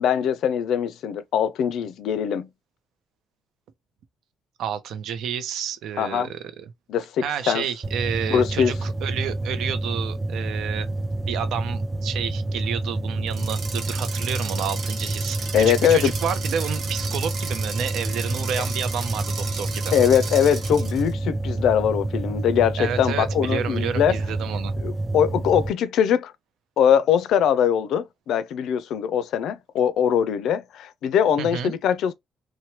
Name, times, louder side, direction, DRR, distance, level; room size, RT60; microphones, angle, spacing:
voice 1, 0.0-2.5 6.0-6.3 6.9-7.6 8.3-8.7 15.5-16.1 19.9-24.2 24.8-26.3 26.8-32.1, left 8 dB, 65° left, 0.4 m, -22 dB
voice 2, 4.6-6.7 7.2-10.9 11.3-19.9 22.8-24.7 31.4-31.7, right 8 dB, 70° right, 0.5 m, -30 dB
sound 1, 7.8-25.7, right 2 dB, 10° right, 0.3 m, -28 dB
sound 2, 13.3-21.1, right 5 dB, 45° right, 0.9 m, -35 dB
3.0 x 2.1 x 2.8 m
cardioid pair, 175°, 0 cm